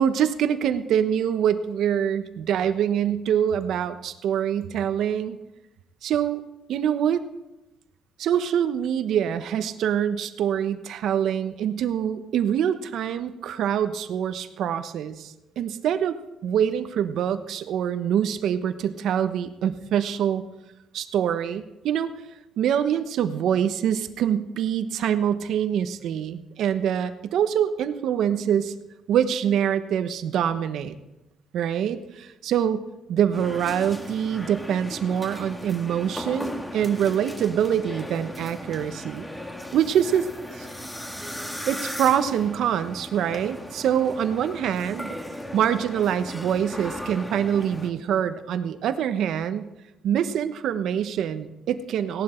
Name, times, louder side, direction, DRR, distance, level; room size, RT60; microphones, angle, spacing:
voice 1, 0.0-5.4 6.0-6.4 6.7-7.2 8.2-16.2 16.4-20.4 20.9-22.1 22.6-28.7 29.1-30.9 31.5-32.8 33.1-39.3 39.7-40.3 40.6-40.7 41.7-45.2 45.5-49.7 50.0-52.2, right 9 dB, 75° right, 10 dB, 1.0 m, -25 dB
sound 1, 33.3-47.9, left 1 dB, 10° left, 1.9 m, -37 dB
17.5 x 11.5 x 4.5 m, 0.96 s
cardioid pair, 90°, 0 cm